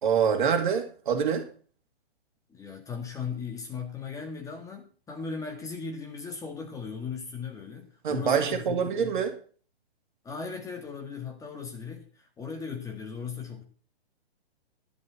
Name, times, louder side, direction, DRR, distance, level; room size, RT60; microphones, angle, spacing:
voice 1, 0.0-1.5 8.0-9.3, right 7 dB, 50° right, 2.4 m, -25 dB
voice 2, 2.5-9.2 10.2-13.6, left 5 dB, 10° left, 1.8 m, -37 dB
11.5 x 5.4 x 8.3 m
figure-of-eight pair, 125°, 31 cm